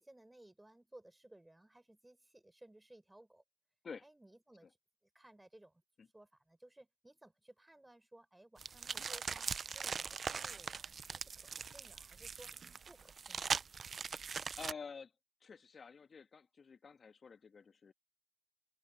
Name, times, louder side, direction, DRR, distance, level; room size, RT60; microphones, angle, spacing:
voice 1, 0.0-3.4 4.0-4.7 5.1-5.8 6.1-9.5 9.7-12.5 12.9-13.7, right 1 dB, 15° right, 4.8 m, -60 dB
sound 1, 8.6-14.7, right 6 dB, 55° right, 0.6 m, -41 dB
voice 2, 14.2-15.1 15.4-17.9, left 5 dB, 55° left, 1.6 m, -50 dB
supercardioid pair, 50°, 0 cm